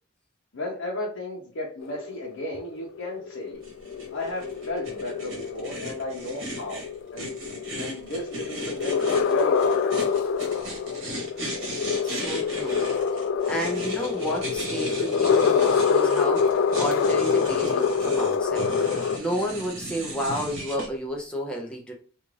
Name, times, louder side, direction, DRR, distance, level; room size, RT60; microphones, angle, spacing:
voice 1, 0.5-3.6 4.1-6.8 7.1-10.1, left 1 dB, 65° left, -3 dB, 0.7 m, -34 dB
sound 1, 1.8-19.2, left 6 dB, 85° left, 0.3 m, -26 dB
sound 2, 3.6-20.9, right 1 dB, 75° right, 1.1 m, -37 dB
voice 2, 12.0-12.9 13.5-21.9, equal, 5° left, -2 dB, 0.5 m, -31 dB
2.5 x 2.4 x 3.1 m, 0.43 s
head